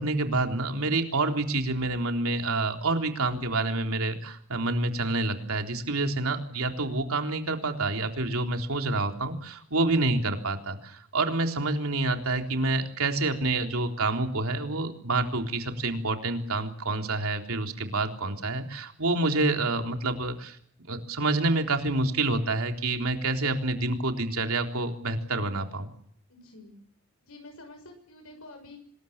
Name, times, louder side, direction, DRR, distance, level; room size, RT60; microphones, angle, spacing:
voice 1, 0.0-20.6 20.9-25.9, right 2 dB, 70° right, 4 dB, 3.8 m, -28 dB
voice 2, 26.3-26.8 27.2-28.8, left 2 dB, 70° left, 5 dB, 6.4 m, -48 dB
26.0 x 21.0 x 7.4 m, 0.63 s
head